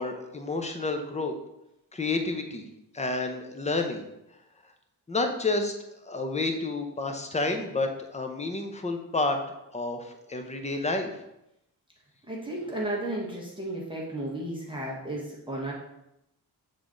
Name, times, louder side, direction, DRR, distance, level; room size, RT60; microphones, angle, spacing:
voice 1, 0.0-1.3 1.9-2.7 2.9-4.0 5.1-5.7 6.0-9.4 9.7-11.1, left 3 dB, 15° left, 5 dB, 0.6 m, -30 dB
voice 2, 12.3-15.7, right 1 dB, 10° right, -5 dB, 1.3 m, -33 dB
7.1 x 3.7 x 3.8 m, 0.86 s
wide cardioid pair, 120°, 40 cm